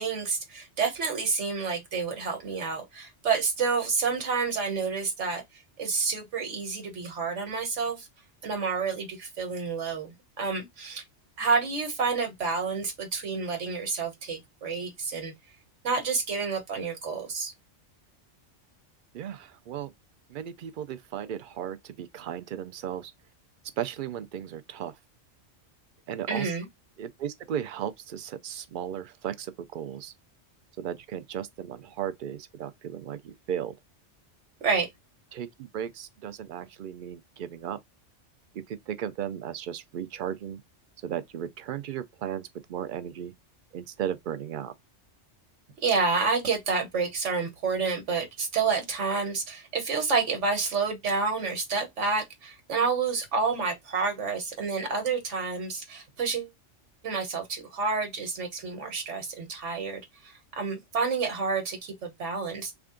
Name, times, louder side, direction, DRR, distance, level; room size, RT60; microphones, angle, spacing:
voice 1, 0.0-5.4 5.8-8.1 8.4-11.0 11.4-15.3 15.8-17.5 26.3-26.7 34.6-34.9 45.8-56.5 57.0-62.7, right 4 dB, 80° right, 1.4 m, -29 dB
voice 2, 19.1-19.9 20.3-23.1 23.8-25.0 26.1-26.5 27.0-30.1 30.8-33.7 35.3-37.8 38.5-40.6 41.0-43.3 43.7-44.7, right 9 dB, 60° right, 0.5 m, -35 dB
3.4 x 2.4 x 3.6 m
omnidirectional pair, 1.2 m